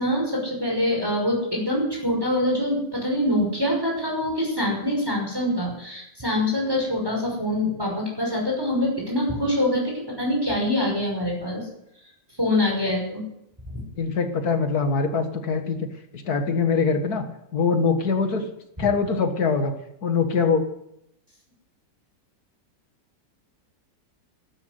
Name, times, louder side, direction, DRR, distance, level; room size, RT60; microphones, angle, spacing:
voice 1, 0.0-11.7 12.4-13.2 13.7-13.8 18.8-18.9, left 1 dB, 10° right, -2 dB, 5.7 m, -25 dB
voice 2, 14.0-15.9 16.1-17.2 17.5-18.4 18.8-19.7 20.0-20.6, left 5 dB, 60° left, 6 dB, 2.1 m, -23 dB
13.0 x 11.5 x 8.2 m, 0.79 s
omnidirectional pair, 1.9 m